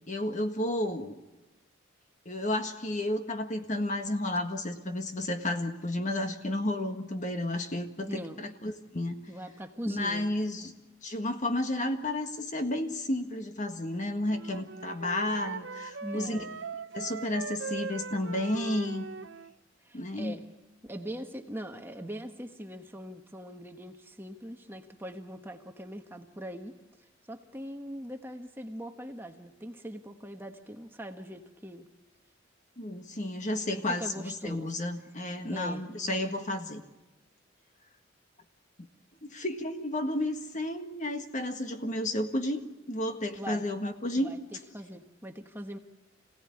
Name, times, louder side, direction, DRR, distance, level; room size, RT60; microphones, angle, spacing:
voice 1, 0.1-1.2 2.2-9.2 9.8-10.7 11.0-16.4 16.9-19.1 19.9-20.3 32.8-36.8 39.2-44.3, left 1 dB, 40° left, 6 dB, 1.7 m, -32 dB
voice 2, 8.1-8.4 9.3-10.3 16.0-16.6 19.8-20.4 20.8-26.8 27.3-31.8 33.7-34.7 35.5-35.9 43.3-43.6 44.2-45.8, equal, 10° right, 4 dB, 1.2 m, -41 dB
Wind instrument woodwind instrument, 14.3-19.5, right 4 dB, 65° right, 0.8 m, -40 dB
26.5 x 17.0 x 9.7 m, 1.1 s
head